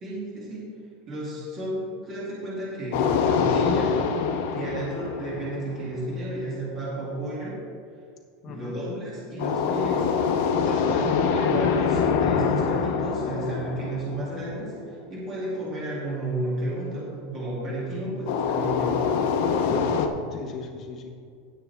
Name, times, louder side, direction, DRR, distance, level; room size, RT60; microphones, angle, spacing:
voice 1, 0.0-0.7 1.1-4.0 4.5-7.6 8.4-10.1 10.6-19.0, right 1 dB, 25° right, -6 dB, 2.7 m, -32 dB
sound 1, 2.9-6.0 9.4-14.8 18.3-20.1, left 6 dB, 55° left, 0.8 m, -25 dB
voice 2, 4.7-5.1 8.4-8.8 10.8-11.1 17.9-18.1 19.7-21.1, left 4 dB, 25° left, 0 dB, 1.1 m, -37 dB
17.0 x 6.1 x 3.6 m, 2.2 s
supercardioid pair, 175°, 0 cm